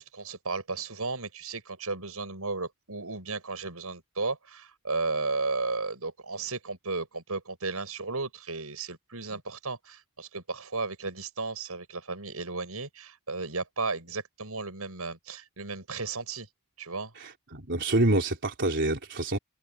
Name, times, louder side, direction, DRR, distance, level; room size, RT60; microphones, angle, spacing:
voice 1, 0.0-16.5 16.8-17.1, right 3 dB, 80° right, 7.0 m, -34 dB
voice 2, 17.2-19.4, right 2 dB, 55° right, 3.7 m, -27 dB
head